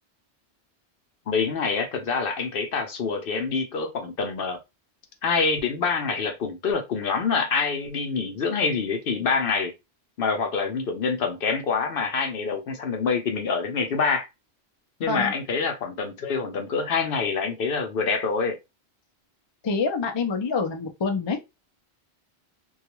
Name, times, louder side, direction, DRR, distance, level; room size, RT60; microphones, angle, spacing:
voice 1, 1.3-4.6 5.2-9.7 10.2-14.3 15.0-18.6, left 5 dB, 65° left, 0.8 m, -26 dB
voice 2, 19.6-21.4, left 4 dB, 45° left, 0.4 m, -26 dB
2.3 x 2.3 x 2.9 m
omnidirectional pair, 1.1 m